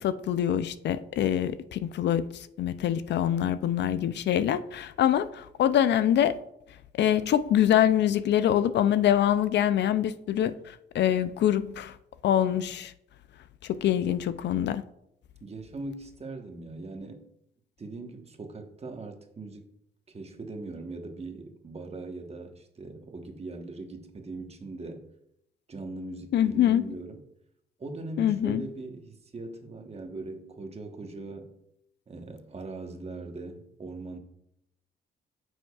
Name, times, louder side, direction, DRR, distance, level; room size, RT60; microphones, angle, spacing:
voice 1, 0.0-6.4 7.0-11.9 12.2-12.9 13.6-14.8 26.3-26.9 28.2-28.6, left 10 dB, 60° left, 13 dB, 0.4 m, -25 dB
voice 2, 3.4-3.8 15.4-17.3 17.8-19.6 20.1-25.1 25.7-27.2 27.8-31.5 32.1-34.2, right 2 dB, 30° right, 4 dB, 1.2 m, -40 dB
9.3 x 6.3 x 2.4 m, 0.77 s
cardioid pair, 90°, 20 cm